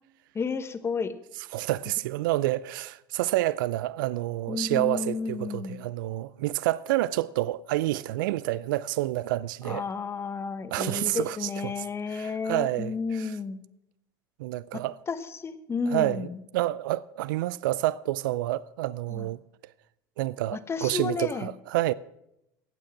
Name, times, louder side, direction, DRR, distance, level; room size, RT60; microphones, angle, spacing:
voice 1, 0.3-1.1 4.5-5.8 9.6-13.6 14.7-14.8 15.1-16.4 19.1-19.3 20.5-21.5, left 5 dB, 25° left, 1.1 m, -32 dB
voice 2, 1.5-9.8 10.7-11.5 12.1-13.3 14.4-15.0 15.9-16.3 16.5-19.4 20.2-21.9, right 16 dB, 80° right, 0.4 m, -28 dB
15.0 x 9.0 x 5.9 m
supercardioid pair, 100°, 11 cm